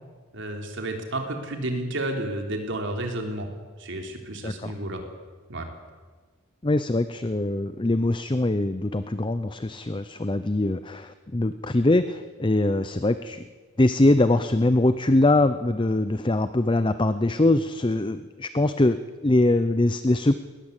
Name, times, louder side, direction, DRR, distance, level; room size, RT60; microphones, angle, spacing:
voice 1, 0.3-3.5 3.8-5.0 5.5-5.7, right 1 dB, 55° right, 3 dB, 3.6 m, -31 dB
voice 2, 6.6-13.4 13.8-20.3, left 2 dB, 20° left, 12 dB, 0.6 m, -22 dB
21.0 x 19.5 x 8.3 m, 1.4 s
head